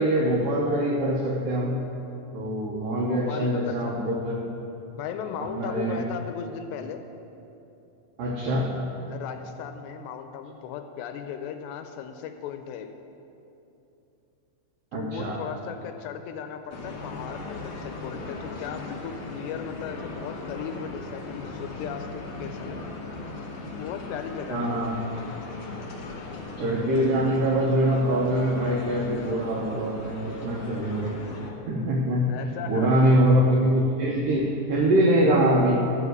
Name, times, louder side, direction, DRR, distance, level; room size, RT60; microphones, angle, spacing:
voice 1, 0.0-1.9 2.3-4.4 5.4-6.0 8.2-8.7 14.9-15.4 24.5-24.9 26.6-31.2 31.7-32.3 32.7-35.8, right 1 dB, 75° right, -2 dB, 2.0 m, -23 dB
voice 2, 2.8-4.2 5.0-7.0 9.1-12.9 14.9-22.8 23.8-24.7 32.3-33.2, left 8 dB, 80° left, 7 dB, 2.6 m, -37 dB
sound 1, 16.7-31.5, left 3 dB, 55° left, 2.8 m, -38 dB
13.5 x 5.7 x 7.9 m, 2.9 s
omnidirectional pair, 5.3 m